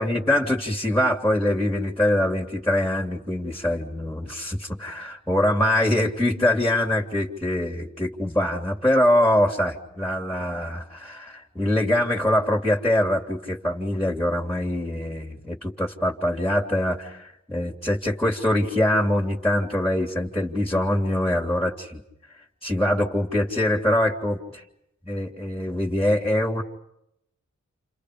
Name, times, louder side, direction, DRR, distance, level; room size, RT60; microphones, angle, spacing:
voice 1, 0.0-22.0 22.6-24.6 25.0-26.6, left 1 dB, 5° left, 0 dB, 3.0 m, -23 dB
30.0 x 29.5 x 5.1 m, 0.80 s
wide cardioid pair, 105°, 29 cm